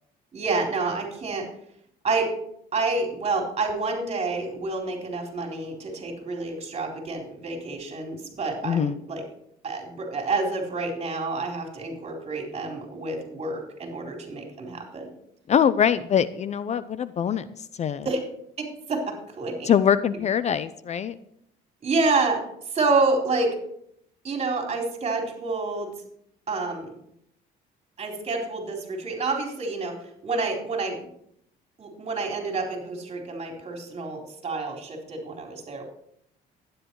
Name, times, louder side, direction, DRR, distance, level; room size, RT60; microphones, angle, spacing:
voice 1, 0.3-1.5 2.0-2.3 2.7-9.2 9.6-15.1 18.0-18.2 18.6-19.7 21.8-22.4 22.7-23.5 24.2-25.9 26.5-26.9 28.0-29.9 30.2-31.1 31.8-35.8, right 3 dB, 40° right, 2 dB, 4.0 m, -28 dB
voice 2, 8.6-9.0 15.5-17.5 17.8-18.1 19.7-21.1, left 8 dB, 40° left, 15 dB, 0.6 m, -23 dB
12.0 x 10.5 x 4.7 m, 0.71 s
cardioid pair, 110°, 17 cm